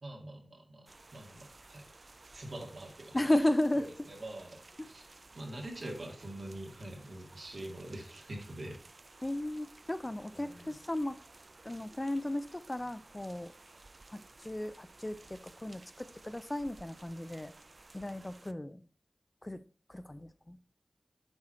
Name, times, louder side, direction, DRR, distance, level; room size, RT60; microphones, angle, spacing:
voice 1, 0.0-1.9 2.3-3.3 3.7-5.0 5.3-8.8 10.3-10.7, right 1 dB, 75° right, 1 dB, 2.1 m, -45 dB
sound 1, 0.9-18.5, right 2 dB, 50° right, 0.4 m, -56 dB
voice 2, 3.1-3.9 4.8-4.9 9.2-11.2 11.6-13.5 14.1-17.5 17.9-18.9 19.4-19.6 19.9-20.6, left 1 dB, 25° left, 13 dB, 0.5 m, -34 dB
7.5 x 4.6 x 4.3 m, 0.37 s
wide cardioid pair, 60°, 0 cm